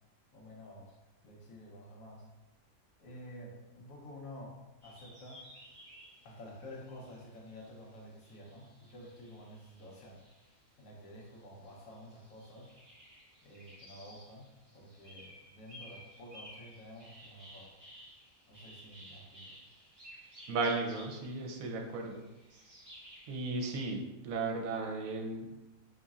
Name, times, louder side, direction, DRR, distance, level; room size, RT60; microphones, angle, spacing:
voice 1, 0.3-1.0 1.2-2.3 3.0-5.5 6.2-10.2 10.8-12.7 13.4-17.7 18.5-19.5, left 1 dB, 75° left, -2 dB, 1.3 m, -50 dB
sound 1, 4.8-10.6 11.0-23.9, equal, 35° right, 1.6 m, -56 dB
voice 2, 20.5-22.2 23.3-25.5, right 3 dB, 80° right, 2 dB, 1.0 m, -35 dB
4.0 x 3.1 x 2.4 m, 1.0 s
omnidirectional pair, 1.5 m